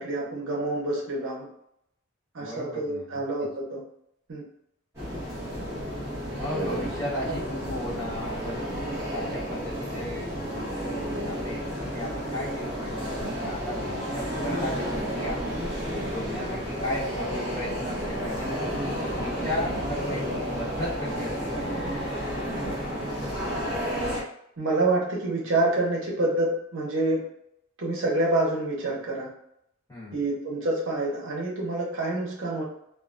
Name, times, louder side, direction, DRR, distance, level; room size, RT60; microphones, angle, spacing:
voice 1, 0.0-1.5 2.3-3.8 4.3-4.4 6.5-6.9 7.3-7.4 24.6-27.2 27.8-29.3 30.1-32.6, right 2 dB, 65° right, -3 dB, 0.6 m, -27 dB
voice 2, 2.4-3.5 6.3-8.6 9.1-15.6 16.1-18.8 19.1-21.9 29.9-30.2, left 1 dB, 15° left, -11 dB, 1.2 m, -36 dB
sound 1, 4.9-24.2, equal, 15° right, 0.9 m, -31 dB
2.3 x 2.2 x 2.4 m, 0.75 s
head